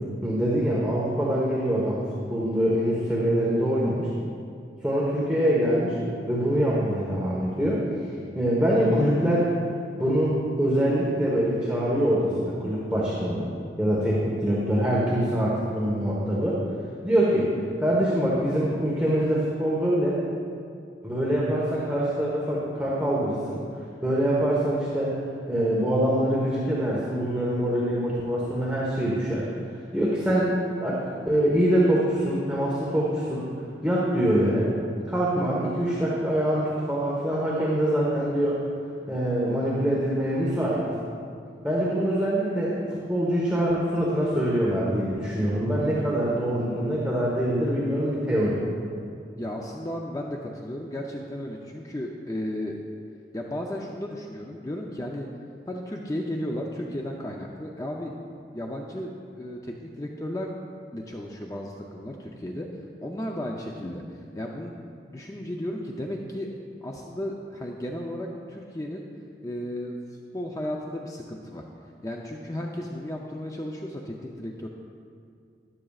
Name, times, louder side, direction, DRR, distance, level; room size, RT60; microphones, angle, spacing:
voice 1, 0.2-2.0 2.3-4.1 4.8-6.0 6.3-7.8 8.3-9.5 10.0-13.5 13.8-16.6 17.0-17.5 17.8-20.2 21.0-23.6 24.0-25.2 25.5-29.4 29.9-30.5 30.8-33.5 33.8-34.7 35.1-38.6 39.1-40.9 41.6-48.6, equal, 5° right, -7 dB, 1.1 m, -24 dB
voice 2, 49.4-52.8 53.3-55.3 55.7-58.1 58.5-59.1 59.4-60.6 60.9-62.7 63.0-64.8 65.1-66.5 66.8-69.0 69.4-70.0 70.3-71.6 72.0-74.7, left 1 dB, 20° left, 0 dB, 0.5 m, -34 dB
12.5 x 11.0 x 2.4 m, 2.3 s
head